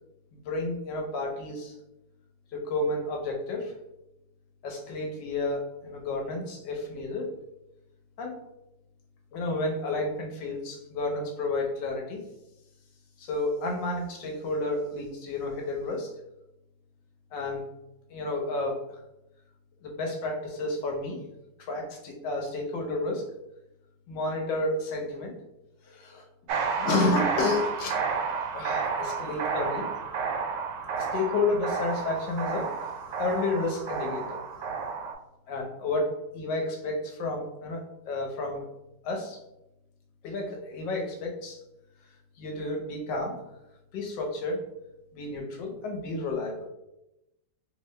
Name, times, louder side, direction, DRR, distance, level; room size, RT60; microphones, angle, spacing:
voice 1, 0.3-1.7 2.5-3.7 4.6-7.3 8.2-8.4 9.3-12.2 13.2-16.1 17.3-17.6 18.1-18.8 19.8-21.2 21.6-23.2 24.1-25.3 25.8-26.2 26.8-28.0 28.5-29.9 31.0-32.7 33.2-34.4 35.5-38.6 39.0-39.4 40.2-41.6 42.4-43.4 43.9-44.6 45.1-46.7, left 2 dB, 85° left, 1 dB, 1.4 m, -31 dB
sound 1, 26.5-35.1, right 5 dB, 80° right, 1.2 m, -31 dB
3.2 x 2.8 x 3.1 m, 0.90 s
omnidirectional pair, 1.9 m